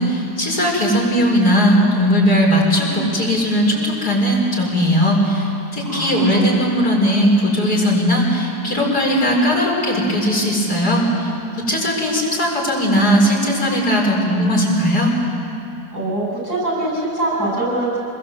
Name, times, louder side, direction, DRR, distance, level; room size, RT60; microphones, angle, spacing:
voice 1, 0.0-11.3 11.6-15.1, equal, 80° left, -3 dB, 5.6 m, -18 dB
voice 2, 5.8-6.5 15.9-18.0, right 2 dB, 75° right, -2 dB, 8.3 m, -23 dB
26.5 x 21.0 x 7.8 m, 2.8 s
omnidirectional pair, 1.7 m